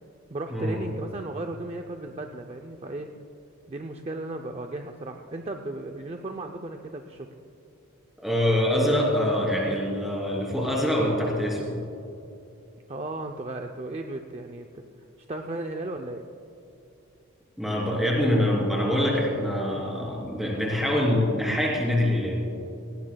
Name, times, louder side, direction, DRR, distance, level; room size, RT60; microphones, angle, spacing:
voice 1, 0.3-3.1 3.7-7.3 12.9-14.7 15.3-16.2, right 2 dB, 30° right, 4 dB, 0.5 m, -35 dB
voice 2, 8.2-11.8 17.6-22.4, left 1 dB, ahead, -4 dB, 3.1 m, -24 dB
18.0 x 18.0 x 2.3 m, 2.8 s
head